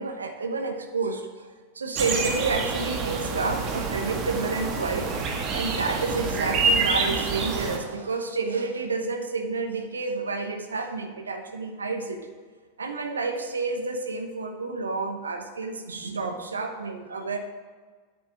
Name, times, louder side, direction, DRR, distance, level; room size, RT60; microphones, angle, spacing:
voice 1, 0.0-5.1 5.5-12.2 12.8-17.4, right 3 dB, 75° right, 5 dB, 1.1 m, -30 dB
sound 1, 2.0-7.8, right 4 dB, 35° right, 1.6 m, -27 dB
10.0 x 8.7 x 4.9 m, 1.5 s
figure-of-eight pair, 90°, 0 cm